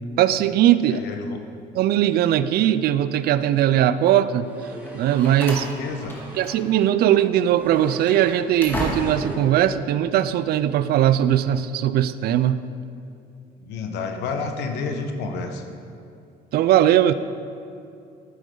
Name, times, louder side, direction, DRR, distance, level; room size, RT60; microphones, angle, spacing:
voice 1, 0.2-1.0 1.8-4.5 4.9-5.7 6.4-12.6 16.5-17.1, right 11 dB, 70° right, 14 dB, 0.4 m, -19 dB
voice 2, 0.9-1.4 5.6-6.2 13.6-15.6, left 4 dB, 85° left, 4 dB, 1.1 m, -30 dB
sound 1, 4.4-6.6 7.4-8.4 8.7-9.7, equal, 10° right, 2.4 m, -40 dB
Slam, 4.8-6.9 7.1-7.3 7.8-9.4, equal, 10° left, 1.9 m, -33 dB
13.0 x 8.2 x 3.9 m, 2.5 s
cardioid pair, 110°, 17 cm